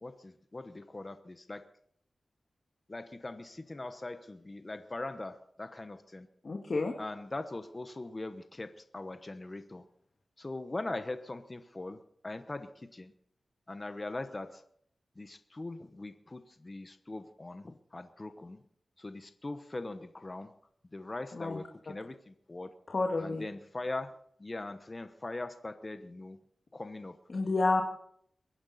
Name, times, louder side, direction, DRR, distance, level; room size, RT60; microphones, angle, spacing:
voice 1, 0.0-1.6 2.9-6.3 7.0-9.8 10.4-13.1 13.7-14.6 15.2-18.6 19.0-20.5 20.9-22.7 23.2-26.4 26.7-27.2, left 2 dB, 30° left, 9 dB, 1.0 m, -41 dB
voice 2, 6.4-6.9 21.3-21.6 22.9-23.5 27.3-27.8, left 3 dB, 50° left, 2 dB, 1.9 m, -30 dB
23.0 x 10.5 x 4.2 m, 0.65 s
wide cardioid pair, 95°, 0 cm